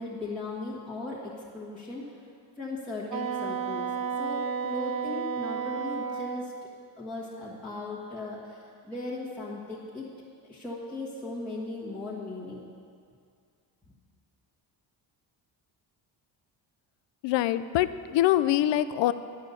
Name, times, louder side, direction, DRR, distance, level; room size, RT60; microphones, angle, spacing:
voice 1, 0.0-2.0 2.6-3.9 4.2-6.5 7.0-10.1 10.4-12.6, left 2 dB, ahead, -9 dB, 1.3 m, -37 dB
Wind instrument woodwind instrument, 3.1-6.5, right 6 dB, 50° right, 0.6 m, -32 dB
voice 2, 17.2-19.1, left 13 dB, 70° left, 13 dB, 0.5 m, -24 dB
11.0 x 5.7 x 8.2 m, 2.3 s
cardioid pair, 160°, 46 cm